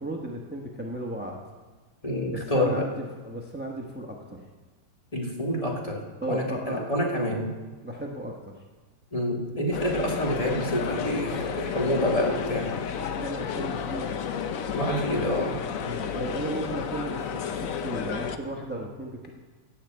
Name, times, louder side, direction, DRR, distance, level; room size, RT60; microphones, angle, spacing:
voice 1, 0.0-1.4 2.3-4.4 6.2-7.4 7.8-8.6 13.0-14.1 15.8-19.3, right 1 dB, 10° right, 0 dB, 0.6 m, -35 dB
voice 2, 2.0-2.9 5.1-7.5 9.1-12.7 14.8-15.6, equal, 20° left, -1 dB, 1.7 m, -27 dB
sound 1, 9.7-18.4, left 7 dB, 60° left, 0.9 m, -32 dB
16.5 x 5.8 x 7.6 m, 1.3 s
omnidirectional pair, 2.0 m